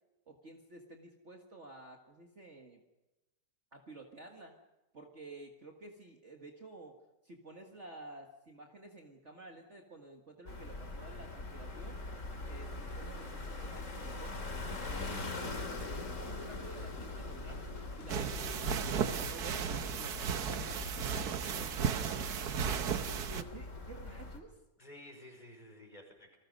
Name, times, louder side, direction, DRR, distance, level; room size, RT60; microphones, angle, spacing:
voice 1, 0.3-2.8 3.7-4.5 4.9-7.0 7.2-12.0 12.5-14.4 14.9-17.6 18.0-18.4 19.0-21.9 22.6-22.8 23.1-24.5, right 2 dB, 40° right, 2 dB, 2.0 m, -51 dB
sound 1, 10.5-24.4, left 2 dB, 45° left, 2.8 m, -43 dB
sound 2, 13.5-21.3, left 3 dB, 80° left, 2.3 m, -51 dB
voice 2, 17.3-17.6 18.1-18.9 24.8-26.4, equal, 20° left, 2 dB, 5.3 m, -53 dB
sound 3, 18.1-23.4, right 7 dB, 60° right, 1.5 m, -35 dB
29.0 x 20.0 x 5.4 m, 1.0 s
omnidirectional pair, 2.0 m